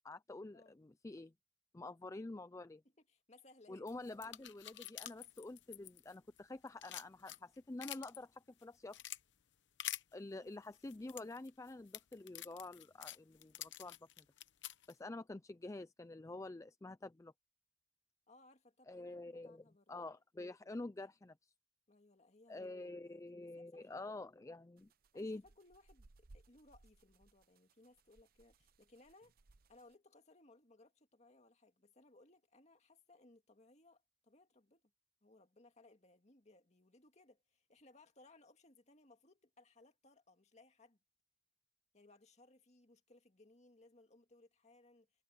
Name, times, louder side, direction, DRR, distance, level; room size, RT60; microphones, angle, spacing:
voice 1, 0.0-1.3 1.7-2.8 3.7-9.0 10.1-14.2 14.9-17.3 18.9-21.5 22.5-24.9 25.1-25.4, left 2 dB, 15° left, 0.4 m, -48 dB
voice 2, 3.0-3.9 10.4-10.6 18.3-19.9 21.9-24.1 25.1-29.3 29.7-34.8 35.2-41.0 41.9-45.1, left 2 dB, 35° left, 2.1 m, -65 dB
sound 1, 3.9-6.4 6.7-8.2 8.6-9.2 9.8-10.0 10.7-14.9, left 13 dB, 70° left, 0.9 m, -48 dB
sound 2, 24.8-29.9, right 2 dB, 50° right, 0.7 m, -66 dB
head